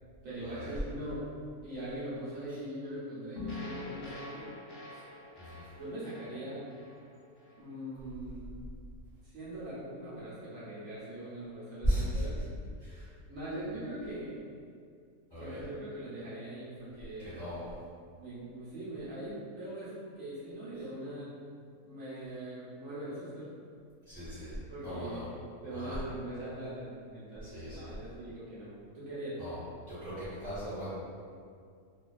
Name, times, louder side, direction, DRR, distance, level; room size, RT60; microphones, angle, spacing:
voice 1, 0.2-1.2 1.6-4.5 4.9-5.0 5.8-6.7 7.6-8.6 9.2-12.4 12.9-14.4 15.4-17.6 18.2-21.3 21.9-23.5 24.7-25.2 25.6-29.4, right 1 dB, 70° right, -10 dB, 1.0 m, -41 dB
sound 1, 3.4-7.7, left 3 dB, 70° left, 0.6 m, -45 dB
voice 2, 11.8-12.2 12.8-13.1 15.3-15.6 17.2-17.6 24.1-24.5 24.8-25.2 25.7-25.9 27.4-27.9 29.4-29.6 29.9-30.9, equal, 20° left, -14 dB, 0.9 m, -36 dB
2.5 x 2.3 x 2.3 m, 2.2 s
omnidirectional pair, 1.5 m